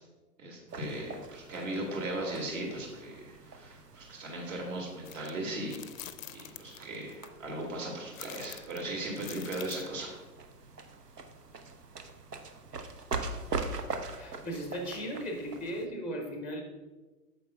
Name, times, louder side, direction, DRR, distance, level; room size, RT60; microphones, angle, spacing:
voice 1, 0.4-5.9 6.3-10.1, right 1 dB, 55° right, -1 dB, 2.1 m, -37 dB
sound 1, 0.7-15.9, right 3 dB, 90° right, 0.8 m, -43 dB
sound 2, 5.0-5.3 5.7-7.3 8.1-10.0, left 11 dB, 60° left, 0.5 m, -46 dB
voice 2, 14.1-16.6, equal, 5° right, 2 dB, 0.5 m, -37 dB
9.0 x 7.1 x 2.2 m, 1.2 s
figure-of-eight pair, 115°, 46 cm